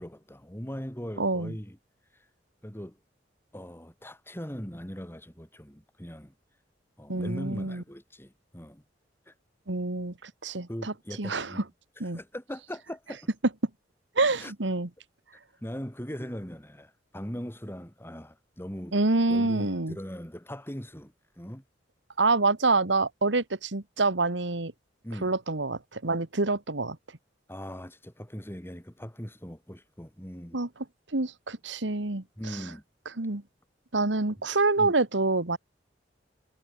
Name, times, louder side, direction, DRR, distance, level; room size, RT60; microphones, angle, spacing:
voice 1, 0.0-1.8 2.6-3.0 3.5-6.3 7.0-8.8 9.3-9.4 10.7-11.6 12.1-13.3 14.4-14.5 15.6-19.0 19.3-21.6 25.0-25.3 27.5-30.6 32.4-32.8 34.8-34.9, equal, 15° left, 5.5 m, -40 dB
voice 2, 1.2-1.5 7.1-7.8 9.7-10.9 11.2-11.6 12.0-12.2 14.2-14.9 18.9-20.0 22.2-24.7 25.2-27.0 30.5-30.7 31.1-32.6 33.2-33.4 33.9-35.6, right 3 dB, 90° right, 1.8 m, -27 dB
head